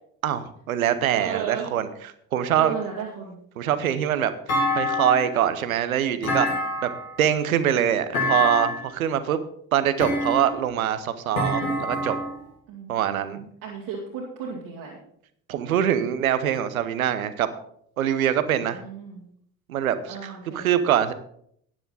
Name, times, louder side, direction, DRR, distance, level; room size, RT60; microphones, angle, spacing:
voice 1, 0.2-1.9 2.3-2.7 3.6-4.3 4.7-6.5 6.8-6.9 7.2-9.4 9.7-12.2 12.9-13.4 15.5-17.5 18.0-18.8 19.7-21.1, right 10 dB, 85° right, 12 dB, 0.8 m, -23 dB
voice 2, 1.1-1.7 2.5-3.4 12.7-15.0 18.6-19.3 20.1-20.7, right 7 dB, 70° right, -3 dB, 2.3 m, -34 dB
Thump thud, 4.5-5.4 6.2-7.1 8.1-8.9 10.0-10.7 11.4-12.4, left 1 dB, 85° left, 2.7 m, -26 dB
13.5 x 10.0 x 4.0 m, 0.67 s
figure-of-eight pair, 45°, 41 cm